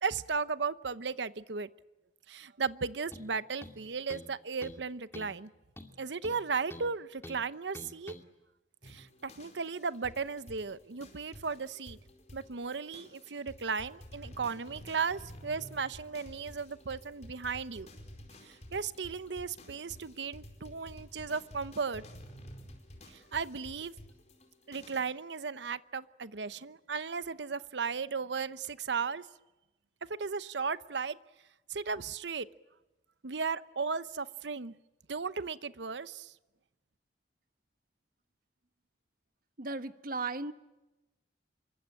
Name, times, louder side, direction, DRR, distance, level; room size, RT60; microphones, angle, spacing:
voice 1, 0.0-1.7 2.3-5.5 6.0-8.1 8.8-12.0 12.3-17.9 18.4-22.0 23.3-23.9 24.7-29.2 30.1-31.2 31.7-32.5 33.2-34.7 35.1-36.3, right 5 dB, 75° right, 15 dB, 0.9 m, -35 dB
sound 1, 3.1-3.3 3.6-4.3 4.6-4.8 5.1-5.4 5.8-6.9 7.2-7.4 7.7-8.2, left 1 dB, 15° left, 2.2 m, -47 dB
sound 2, 8.8-25.0, equal, 40° left, 4.6 m, -52 dB
voice 2, 39.6-40.5, right 3 dB, 55° right, 11 dB, 1.2 m, -36 dB
26.0 x 23.5 x 8.6 m, 1.0 s
head